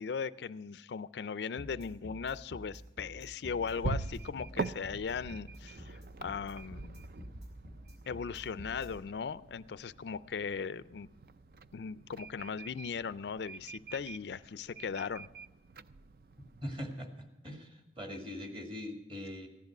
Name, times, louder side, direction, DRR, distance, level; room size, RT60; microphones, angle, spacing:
voice 1, 0.0-7.0 8.1-11.1 11.7-15.3, left 6 dB, 80° left, 17 dB, 0.4 m, -38 dB
sound 1, 1.6-8.9, equal, 90° right, 5.0 m, -48 dB
sound 2, 2.5-16.9, right 4 dB, 55° right, 0.4 m, -45 dB
voice 2, 16.6-19.5, left 1 dB, 30° right, 4 dB, 1.9 m, -42 dB
15.5 x 10.5 x 6.0 m, 1.1 s
head